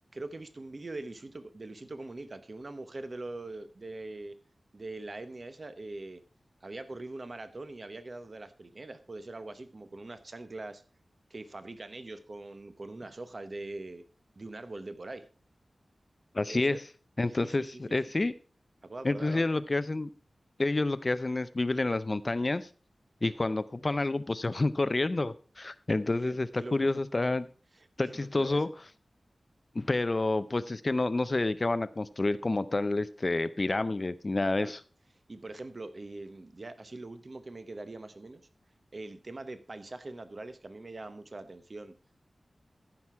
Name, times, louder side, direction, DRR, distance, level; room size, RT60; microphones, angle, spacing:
voice 1, 0.1-4.3 4.7-6.2 6.6-10.8 11.3-14.0 14.4-15.3 16.5-16.8 17.4-18.0 18.8-19.5 26.3-27.0 27.7-27.9 28.2-28.7 34.6-34.7 35.3-38.4 38.9-41.9, right 2 dB, 45° right, 11 dB, 0.8 m, -42 dB
voice 2, 16.3-16.8 17.2-18.4 19.0-20.1 20.6-22.7 23.2-27.5 28.0-28.7 29.7-34.8, left 2 dB, 35° left, 14 dB, 0.5 m, -29 dB
14.0 x 5.9 x 4.7 m, 0.38 s
wide cardioid pair, 90°, 0 cm